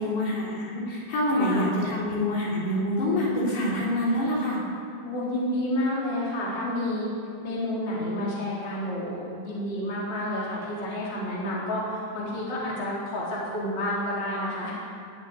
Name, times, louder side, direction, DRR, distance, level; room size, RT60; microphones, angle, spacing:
voice 1, 0.0-4.6, left 1 dB, 60° left, -5 dB, 5.2 m, -26 dB
voice 2, 1.3-1.7 5.0-7.1 7.4-14.7, left 1 dB, 25° left, -6 dB, 3.9 m, -30 dB
17.0 x 8.8 x 9.8 m, 2.4 s
omnidirectional pair, 5.5 m